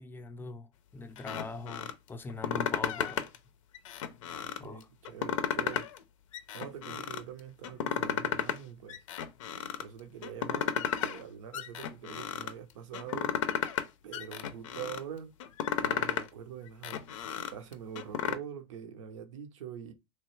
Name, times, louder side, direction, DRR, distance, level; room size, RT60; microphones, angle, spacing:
voice 1, 0.0-3.3 4.6-4.9, left 3 dB, 15° left, 0.4 m, -42 dB
sound 1, 1.2-1.9 2.3-3.4 3.7-4.6 5.0-6.0 6.3-7.2 7.6-8.6 8.9-9.8 10.2-11.2 11.5-12.5 12.9-13.9 14.1-15.0 15.4-16.3 16.7-18.3, left 9 dB, 80° left, 0.5 m, -33 dB
voice 2, 4.3-5.9 6.5-9.0 9.8-13.3 14.0-15.3 15.8-17.0 17.5-19.9, right 8 dB, 80° right, 0.6 m, -44 dB
3.0 x 2.2 x 3.0 m
hypercardioid pair, 100°, 16 cm